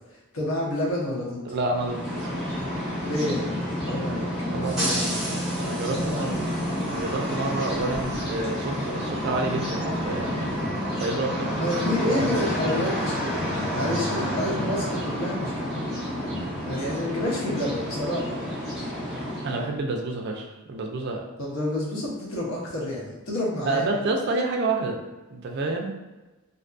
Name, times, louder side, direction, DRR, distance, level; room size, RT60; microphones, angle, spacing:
voice 1, 0.1-1.6 3.0-3.6 3.9-4.3 5.9-6.4 11.6-13.4 13.7-15.7 16.6-18.5 21.4-23.9, left 1 dB, 75° left, -4 dB, 0.8 m, -29 dB
voice 2, 1.5-2.1 4.2-6.3 6.8-10.5 11.0-11.6 12.0-12.4 19.4-21.2 23.7-25.0 25.3-25.9, right 2 dB, 50° right, 2 dB, 0.3 m, -29 dB
sound 1, 1.7-19.7, equal, ahead, 1.1 m, -29 dB
2.6 x 2.3 x 2.5 m, 1.1 s
head